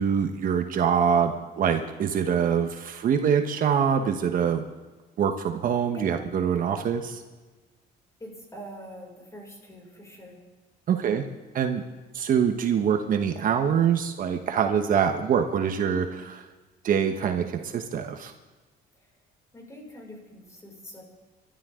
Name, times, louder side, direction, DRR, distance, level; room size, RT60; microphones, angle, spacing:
voice 1, 0.0-4.6 5.2-7.2 10.9-11.3 11.5-11.8 12.1-16.4 16.8-18.3, right 7 dB, 55° right, 6 dB, 1.2 m, -24 dB
voice 2, 8.2-10.4 19.5-21.0, equal, 20° left, -1 dB, 6.2 m, -44 dB
28.5 x 13.0 x 3.8 m, 1.3 s
cardioid pair, 110°, 17 cm